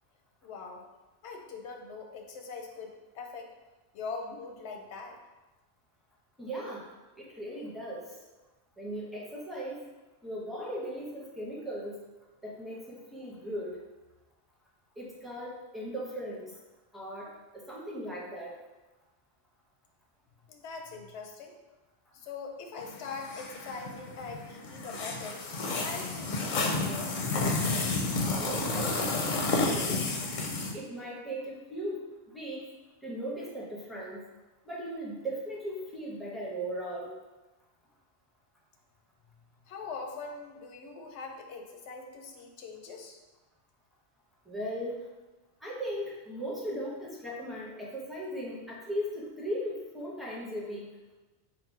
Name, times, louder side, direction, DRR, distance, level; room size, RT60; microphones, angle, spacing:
voice 1, 0.4-0.9 1.2-3.5 3.9-5.2 20.5-21.5 22.1-25.4 25.8-27.1 39.7-43.2, left 4 dB, 90° left, 3 dB, 0.9 m, -42 dB
voice 2, 6.4-6.9 7.2-8.2 8.8-9.8 10.2-11.9 12.4-13.8 15.0-16.5 16.9-17.3 17.5-18.6 28.3-29.3 29.6-30.0 30.7-32.7 33.0-34.2 34.6-37.1 44.5-45.0 45.6-50.9, equal, ahead, -5 dB, 0.6 m, -37 dB
sound 1, 22.8-30.7, left 3 dB, 55° left, 0.5 m, -31 dB
4.1 x 2.0 x 4.5 m, 1.1 s
omnidirectional pair, 1.1 m